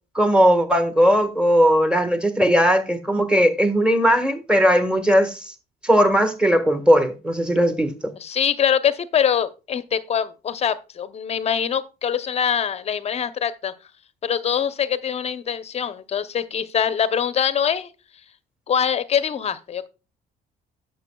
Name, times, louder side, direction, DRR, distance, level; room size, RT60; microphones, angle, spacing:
voice 1, 0.1-5.5 5.8-7.9, equal, 5° right, 1.4 m, -18 dB
voice 2, 8.2-13.7 14.2-17.9 18.7-19.9, left 8 dB, 40° left, 0.7 m, -23 dB
12.0 x 7.4 x 2.3 m
cardioid pair, 110°, 17 cm